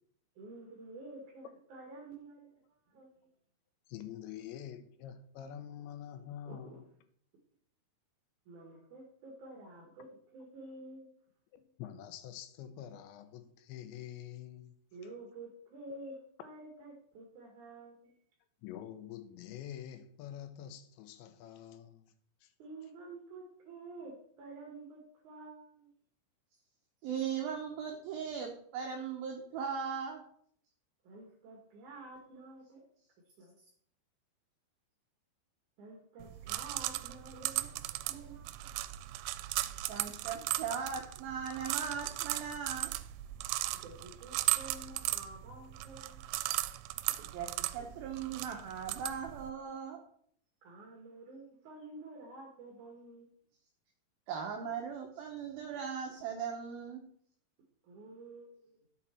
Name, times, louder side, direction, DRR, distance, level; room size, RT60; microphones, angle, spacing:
voice 1, 0.4-2.5 2.9-3.3 6.5-6.8 8.5-10.1 10.3-11.1 14.9-18.1 22.6-25.9 31.0-32.8 33.4-33.5 35.8-38.8 43.8-46.3 47.8-47.9 50.6-53.3 57.8-58.8, right 2 dB, 55° right, 2.5 m, -50 dB
voice 2, 3.9-6.9 11.5-14.8 15.9-16.0 18.6-22.1 22.4-22.5, left 10 dB, 80° left, 3.0 m, -46 dB
voice 3, 27.0-30.2 39.8-42.9 47.3-50.0 54.3-57.0, right 7 dB, 75° right, 2.3 m, -38 dB
sound 1, 36.2-49.5, right 17 dB, 90° right, 3.0 m, -37 dB
12.5 x 7.3 x 4.4 m
omnidirectional pair, 5.3 m